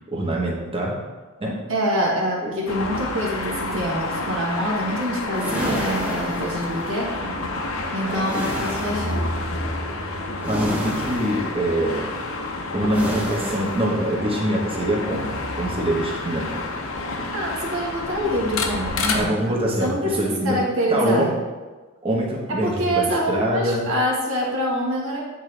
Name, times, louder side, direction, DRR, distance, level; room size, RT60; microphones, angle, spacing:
voice 1, 0.1-1.0 1.4-1.6 2.4-2.5 8.1-8.3 10.5-12.1 12.7-16.6 19.1-20.6 20.9-21.4 22.0-23.9, right 1 dB, 25° right, -2 dB, 1.1 m, -24 dB
voice 2, 1.7-7.4 7.9-9.3 17.3-21.3 22.5-25.2, equal, 70° right, -3 dB, 1.5 m, -25 dB
sound 1, 2.7-19.2, left 2 dB, 90° left, 0.7 m, -29 dB
sound 2, 5.3-6.9 8.2-9.2 10.4-11.5 12.9-13.9, equal, 5° right, 0.8 m, -30 dB
8.6 x 3.7 x 3.3 m, 1.3 s
head